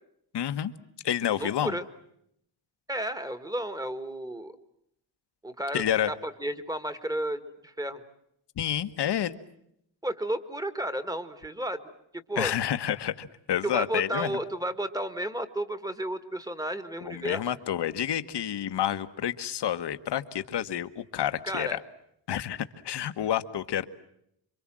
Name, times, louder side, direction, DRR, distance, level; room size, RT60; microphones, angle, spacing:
voice 1, 0.3-0.7 1.0-1.7 5.7-6.1 8.6-9.4 12.4-14.3 17.0-21.8 22.3-23.8, left 10 dB, 65° left, 11 dB, 1.4 m, -29 dB
voice 2, 1.4-1.9 2.9-4.5 5.4-8.0 10.0-11.9 12.3-12.5 13.6-17.4 21.4-21.8, right 1 dB, 10° right, 11 dB, 1.6 m, -32 dB
27.0 x 24.5 x 7.6 m, 0.74 s
wide cardioid pair, 160°, 44 cm